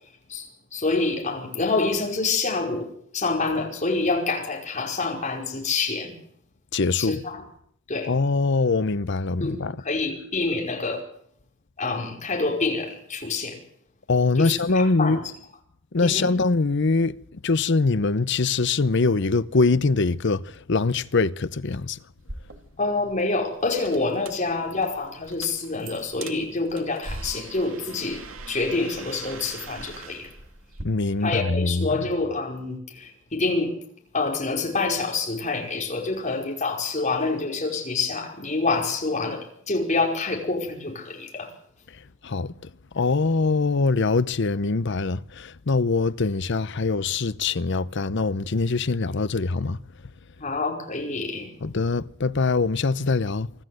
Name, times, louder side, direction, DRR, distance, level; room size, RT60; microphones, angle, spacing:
voice 1, 0.3-2.9 3.1-6.1 7.0-7.4 7.9-8.1 9.4-11.0 11.8-13.6 14.4-15.3 16.0-16.3 22.8-30.3 31.2-33.8 34.1-41.5 50.4-51.5, left 3 dB, 35° left, 5.2 m, -27 dB
voice 2, 6.7-7.2 8.1-9.8 14.1-15.2 15.9-22.0 30.8-31.9 41.9-49.8 51.6-53.5, left 3 dB, 60° left, 0.8 m, -23 dB
sound 1, 22.2-30.9, right 3 dB, 80° right, 2.5 m, -41 dB
25.0 x 14.0 x 7.9 m
head